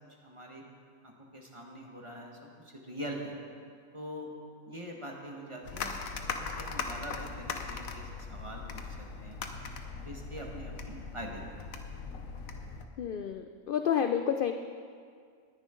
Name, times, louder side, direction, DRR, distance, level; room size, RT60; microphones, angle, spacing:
voice 1, 0.2-0.6 1.0-3.4 3.9-4.3 4.6-9.4 10.0-11.4, equal, 20° right, 0 dB, 1.5 m, -43 dB
sound 1, 5.6-12.9, left 5 dB, 80° left, 1.3 m, -39 dB
voice 2, 13.0-14.5, left 8 dB, 65° left, 7 dB, 0.5 m, -29 dB
19.0 x 10.0 x 3.8 m, 2.2 s
omnidirectional pair, 1.4 m